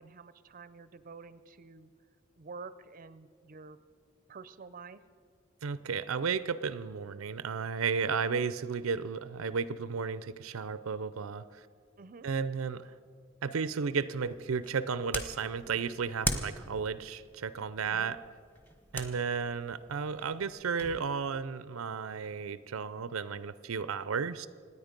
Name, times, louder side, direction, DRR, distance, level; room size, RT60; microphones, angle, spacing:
voice 1, 0.0-1.9 2.4-3.8 4.3-5.0 12.0-12.3 17.8-18.2, right 4 dB, 40° right, 14 dB, 0.5 m, -48 dB
voice 2, 5.6-11.6 12.2-12.9 13.4-18.2 18.9-24.5, right 5 dB, 90° right, 15 dB, 0.5 m, -33 dB
sound 1, 14.2-21.0, equal, 10° left, 1.1 m, -41 dB
26.0 x 9.6 x 5.2 m, 2.1 s
head